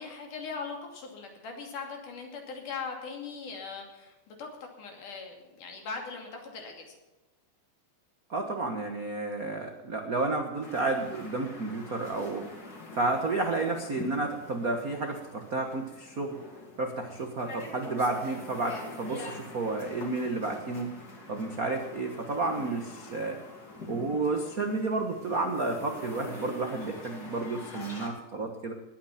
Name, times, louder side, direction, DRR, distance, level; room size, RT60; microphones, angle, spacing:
voice 1, 0.0-4.5 4.8-6.9 18.2-18.4, left 5 dB, 70° left, 2 dB, 4.2 m, -40 dB
voice 2, 8.3-12.5 12.9-16.4 16.8-20.9 21.3-23.4 23.9-28.7, right 3 dB, 70° right, 4 dB, 0.8 m, -31 dB
sound 1, 10.6-28.1, left 2 dB, 30° left, 2.7 m, -45 dB
19.5 x 9.2 x 5.8 m, 1.1 s
omnidirectional pair, 3.7 m